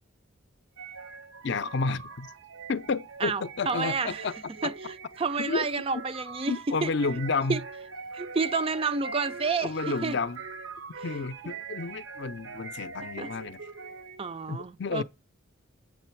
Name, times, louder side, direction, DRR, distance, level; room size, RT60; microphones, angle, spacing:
sound 1, 0.8-14.4, right 4 dB, 70° right, 0.8 m, -42 dB
voice 1, 1.4-2.3 2.7-4.4 4.6-4.7 5.4-6.0 6.5-7.6 9.6-10.4 11.0-13.7 14.5-15.0, left 4 dB, 55° left, 0.5 m, -31 dB
voice 2, 3.2-4.2 4.6-4.7 5.2-6.9 7.5-7.6 8.1-10.2 13.2-13.3 14.2-15.0, right 4 dB, 25° right, 0.4 m, -29 dB
8.1 x 7.6 x 4.5 m
head